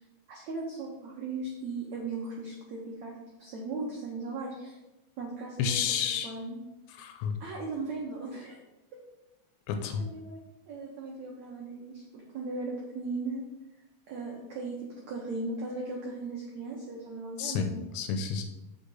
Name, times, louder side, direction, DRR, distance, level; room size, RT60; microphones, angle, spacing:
voice 1, 0.3-3.1 3.4-4.8 5.2-5.8 6.2-6.6 7.4-8.6 8.9-9.0 10.0-13.4 14.1-14.7 15.1-18.0, right 3 dB, 85° right, -3 dB, 1.6 m, -37 dB
voice 2, 5.6-6.3 6.9-7.4 9.7-10.1 17.4-17.7 17.9-18.4, left 7 dB, 80° left, 6 dB, 2.8 m, -30 dB
8.2 x 6.1 x 3.9 m, 0.98 s
omnidirectional pair, 5.0 m